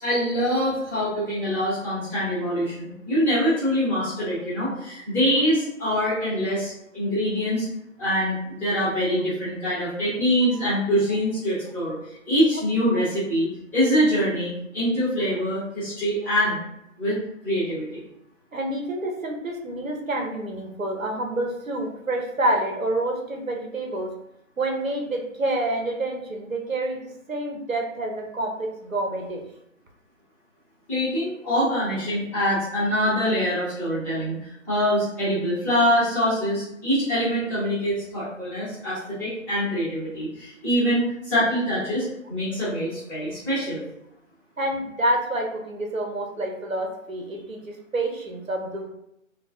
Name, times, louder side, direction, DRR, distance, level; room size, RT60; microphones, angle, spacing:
voice 1, 0.0-7.6 8.0-12.0 12.3-13.5 13.7-16.6 17.0-17.1 17.4-18.0 30.9-43.8, equal, 5° left, -14 dB, 0.9 m, -24 dB
voice 2, 18.5-24.1 24.6-27.0 27.3-29.4 44.6-48.9, right 1 dB, 85° right, 1 dB, 1.0 m, -28 dB
4.5 x 2.3 x 2.6 m, 0.80 s
figure-of-eight pair, 145°, 39 cm